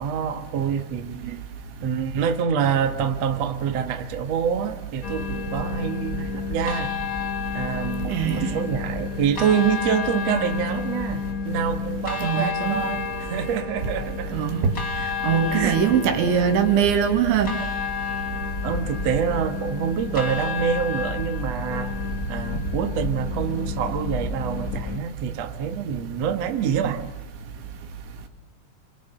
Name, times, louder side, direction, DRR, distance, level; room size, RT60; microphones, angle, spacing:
voice 1, 0.0-1.4 1.8-6.9 7.5-14.4 15.5-15.8 18.6-21.9 22.3-27.1, right 7 dB, 60° right, 1.8 m, -26 dB
sound 1, 5.0-25.0, left 4 dB, 75° left, 0.7 m, -30 dB
voice 2, 8.1-8.5 12.2-12.8 14.3-14.7 15.2-17.6, right 7 dB, 75° right, 4.7 m, -21 dB
27.5 x 27.0 x 8.1 m
omnidirectional pair, 5.3 m